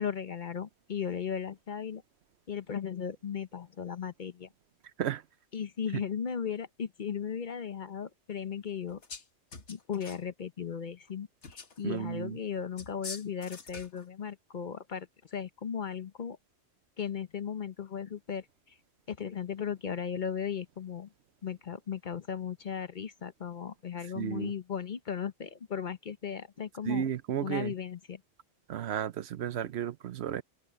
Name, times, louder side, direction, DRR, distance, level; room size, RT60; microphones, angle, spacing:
voice 1, 0.0-2.0 2.5-4.5 5.5-9.0 9.7-16.4 17.0-18.4 19.1-21.1 21.4-27.0 27.4-28.2, left 7 dB, 50° left, 0.9 m, -36 dB
sound 1, 8.9-9.3 9.5-10.3 11.4-11.8 12.8-14.0, left 4 dB, 85° left, 1.9 m, -45 dB
voice 2, 11.8-12.4 24.1-24.5 26.8-27.7 28.7-30.4, right 9 dB, 70° right, 0.9 m, -33 dB
open air
omnidirectional pair, 1.2 m